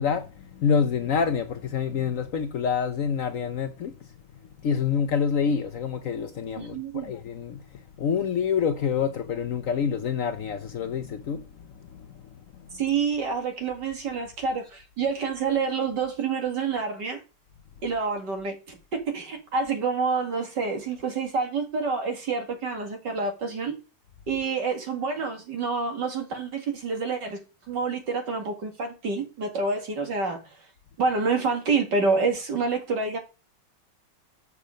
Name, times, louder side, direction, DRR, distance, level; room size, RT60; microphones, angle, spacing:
voice 1, 0.0-3.9 4.6-11.4 11.9-12.1, left 6 dB, 60° left, 0.9 m, -27 dB
voice 2, 6.6-7.1 12.7-17.2 17.8-23.7 24.3-27.4 27.7-30.4 31.0-33.2, right 4 dB, 75° right, 2.7 m, -28 dB
8.2 x 6.0 x 5.1 m
omnidirectional pair, 1.9 m